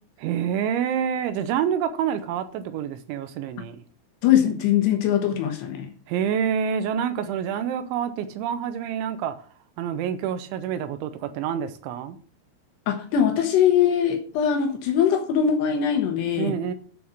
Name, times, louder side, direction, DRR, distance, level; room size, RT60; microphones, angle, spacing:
voice 1, 0.2-3.8 6.1-9.3 9.8-12.2 16.4-16.7, right 8 dB, 80° right, 3.1 m, -27 dB
voice 2, 4.2-5.9 12.9-16.5, left 9 dB, 70° left, 3.2 m, -21 dB
8.8 x 6.8 x 6.4 m
omnidirectional pair, 5.5 m